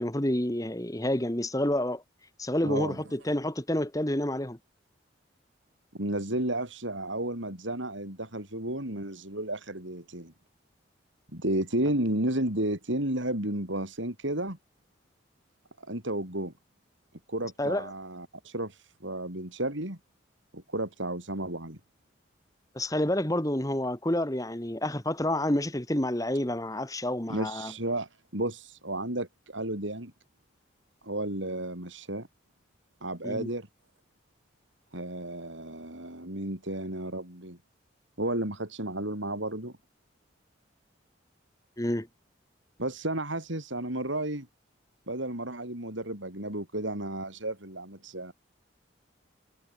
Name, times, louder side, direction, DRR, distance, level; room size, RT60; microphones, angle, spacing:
voice 1, 0.0-2.0 2.4-4.6 17.6-17.9 22.7-27.7 33.2-33.5 41.8-42.1, left 1 dB, 20° left, 1.6 m, -29 dB
voice 2, 2.6-3.0 5.9-10.3 11.3-14.6 15.8-16.5 17.3-20.0 20.5-21.8 27.3-30.1 31.0-32.3 33.0-33.7 34.9-37.6 38.2-39.8 42.8-44.5 45.1-48.3, right 1 dB, 75° right, 6.8 m, -32 dB
head